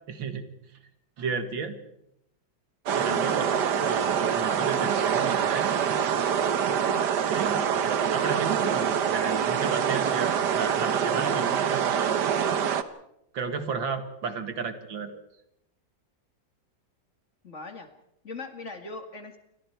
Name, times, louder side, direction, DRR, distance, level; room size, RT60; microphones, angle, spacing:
voice 1, 0.1-0.4 1.2-1.8 2.9-3.5 3.8-5.7 7.3-7.7 8.1-12.1 13.3-15.2, right 5 dB, 80° right, 8 dB, 2.7 m, -33 dB
sound 1, 2.9-12.8, right 8 dB, 65° right, 1.6 m, -25 dB
voice 2, 3.1-3.4 6.8-7.2 17.4-17.9 18.2-19.4, left 4 dB, 40° left, 6 dB, 2.3 m, -39 dB
29.0 x 24.0 x 4.7 m, 0.79 s
omnidirectional pair, 2.0 m